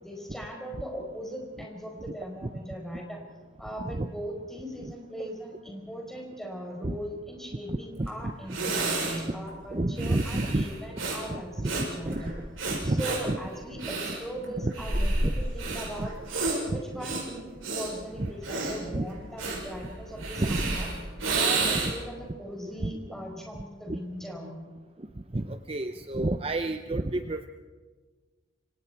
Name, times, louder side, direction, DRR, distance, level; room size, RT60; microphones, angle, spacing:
voice 1, 0.0-3.2 3.6-12.2 12.8-16.1 16.7-17.4 17.7-20.9 21.3-24.5, equal, ahead, 0 dB, 4.6 m, -39 dB
voice 2, 7.7-8.6 9.7-10.6 11.3-12.2 12.7-13.4 14.6-14.7 15.2-15.3 16.0-16.1 16.7-17.2 18.2-18.3 18.9-19.0 20.4-20.8 21.5-21.9 22.8-22.9 23.9-24.0 25.0-25.1 25.3-27.5, right 2 dB, 30° right, 8 dB, 0.6 m, -31 dB
Breathing, 8.1-8.2 8.5-22.1, right 3 dB, 80° right, 7.3 m, -31 dB
27.5 x 24.5 x 4.6 m, 1.4 s
head